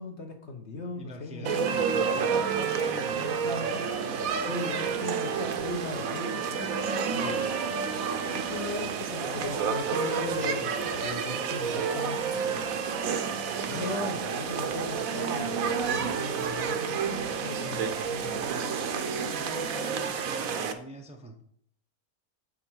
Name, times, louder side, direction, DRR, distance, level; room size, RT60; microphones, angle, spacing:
voice 1, 0.0-1.8 4.4-6.8 7.1-7.6 8.3-12.7 13.7-18.6, left 3 dB, 50° left, 4 dB, 1.3 m, -38 dB
voice 2, 0.9-3.2 17.5-17.9 19.2-21.4, equal, 5° right, 3 dB, 0.6 m, -45 dB
sound 1, 1.5-20.7, right 6 dB, 75° right, 1.2 m, -30 dB
7.6 x 4.5 x 6.2 m, 0.66 s
omnidirectional pair, 1.5 m